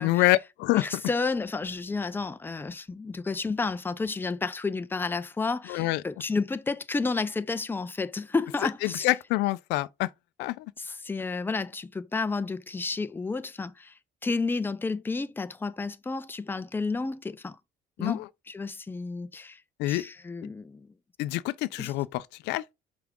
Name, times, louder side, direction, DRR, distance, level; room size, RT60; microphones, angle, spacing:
voice 1, 0.0-1.0 5.7-6.0 8.8-10.1 10.4-10.7 18.0-18.3 19.8-20.0 21.2-22.6, left 18 dB, 90° left, 0.5 m, -26 dB
voice 2, 0.8-9.1 11.0-13.9 14.2-17.6 18.0-19.6 19.9-20.9 21.8-21.9, left 4 dB, 10° left, 0.5 m, -31 dB
5.9 x 5.0 x 3.6 m
cardioid pair, 110°, 17 cm